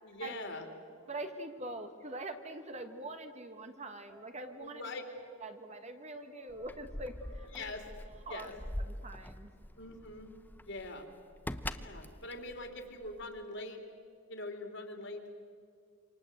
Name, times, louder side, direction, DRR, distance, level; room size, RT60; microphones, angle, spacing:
voice 1, 0.0-0.7 4.6-5.0 7.5-7.8 8.1-8.5 9.8-10.3 10.6-11.1 11.7-13.8 14.3-15.3, left 2 dB, 55° left, 4 dB, 3.5 m, -43 dB
sound 1, 0.8-9.1, right 2 dB, 90° right, 4.8 m, -60 dB
voice 2, 1.1-4.9 5.4-7.7 8.3-8.5 8.8-9.5, right 2 dB, 30° right, 7 dB, 1.5 m, -44 dB
Keys jangling, 6.5-13.4, left 1 dB, 10° left, 0.7 m, -43 dB
28.5 x 26.5 x 7.9 m, 2.3 s
head